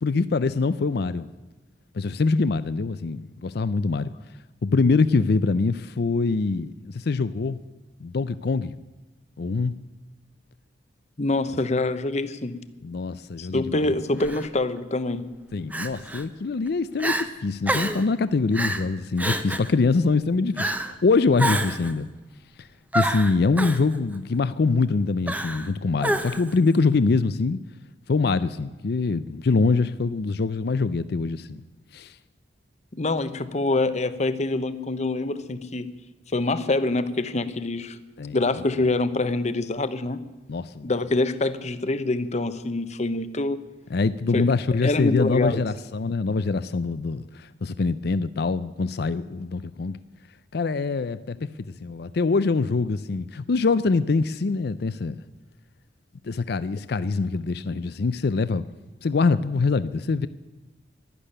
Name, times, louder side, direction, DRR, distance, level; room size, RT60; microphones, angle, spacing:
voice 1, 0.0-1.3 1.9-4.1 4.6-7.6 8.0-8.7 9.4-9.8 12.8-13.9 15.5-22.1 22.6-22.7 22.9-27.6 28.1-31.6 31.9-32.1 38.2-38.4 40.5-40.9 43.9-50.0 50.5-51.5 51.8-55.2 56.2-58.6 59.0-60.3, left 4 dB, 60° left, 15 dB, 0.5 m, -24 dB
voice 2, 11.2-12.6 13.4-15.3 32.9-35.9 36.3-38.0 38.3-40.2 40.8-43.6 44.3-44.5 44.8-45.6, left 2 dB, 40° left, 12 dB, 0.9 m, -25 dB
Crying sobbing, 14.2-14.4 15.7-16.2 16.7-16.8 17.0-17.3 17.7-18.0 18.5-18.8 19.2-19.7 20.6-20.9 21.4-21.9 22.9-23.8 25.3-25.7 26.0-26.5, right 1 dB, 10° right, 0.9 m, -27 dB
12.0 x 12.0 x 10.0 m, 1.1 s
head